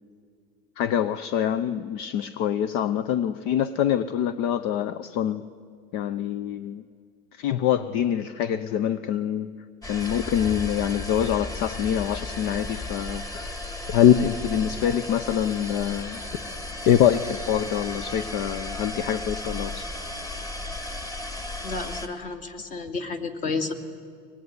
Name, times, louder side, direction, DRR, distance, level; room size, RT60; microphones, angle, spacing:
voice 1, 0.8-5.4 5.9-6.8 7.3-9.5 9.8-13.5 13.9-16.2 16.9-19.9, left 10 dB, 60° left, 14 dB, 0.8 m, -25 dB
Toilet Flush with Cistern Sounds, 9.8-22.1, left 1 dB, 15° left, 2.0 m, -34 dB
voice 2, 21.6-23.7, left 4 dB, 40° left, 5 dB, 2.5 m, -31 dB
24.0 x 20.0 x 9.6 m, 2.2 s
cardioid pair, 150°, 21 cm